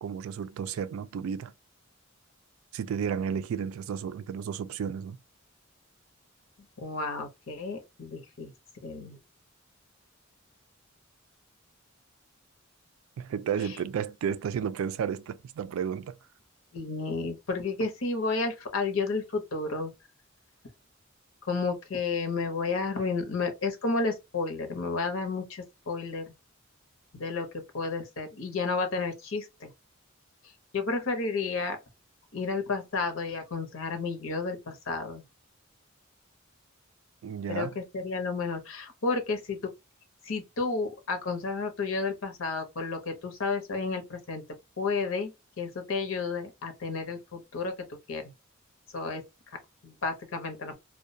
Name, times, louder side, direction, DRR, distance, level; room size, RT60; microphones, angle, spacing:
voice 1, 0.0-1.5 2.7-5.2 13.2-16.2 37.2-37.8, right 7 dB, 85° right, 0.3 m, -32 dB
voice 2, 6.8-8.5 8.8-9.2 16.7-19.9 21.5-26.2 27.1-27.5 27.7-29.7 30.7-31.8 32.3-35.2 37.5-39.6 40.2-44.4 44.8-45.3 45.6-48.2 48.9-49.2 49.8-50.7, left 4 dB, 75° left, 0.7 m, -31 dB
2.3 x 2.1 x 2.6 m
head